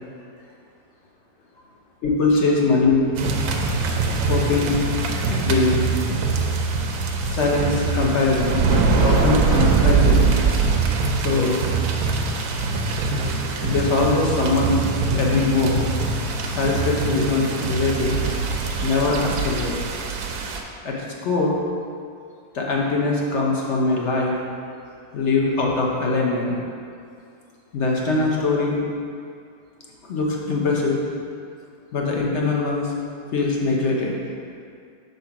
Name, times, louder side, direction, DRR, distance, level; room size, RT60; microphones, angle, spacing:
voice 1, 2.0-3.1 4.3-4.7 5.3-5.8 7.3-10.2 11.1-11.6 13.6-15.8 16.6-18.2 18.8-19.7 20.8-21.6 22.5-24.3 25.1-26.6 27.7-28.8 30.0-31.0 31.9-32.9 33.3-34.1, left 3 dB, 50° left, -2 dB, 1.0 m, -22 dB
sound 1, 3.2-20.6, right 4 dB, 70° right, 1.0 m, -22 dB
4.9 x 3.9 x 5.8 m, 2.3 s
omnidirectional pair, 1.8 m